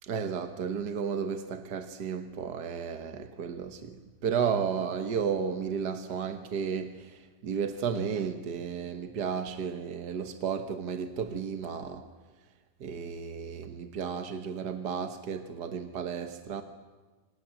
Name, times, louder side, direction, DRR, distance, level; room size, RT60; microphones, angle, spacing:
voice 1, 0.0-12.1 12.8-16.6, right 6 dB, 75° right, 1.9 m, -33 dB
29.0 x 26.0 x 7.6 m
omnidirectional pair, 1.8 m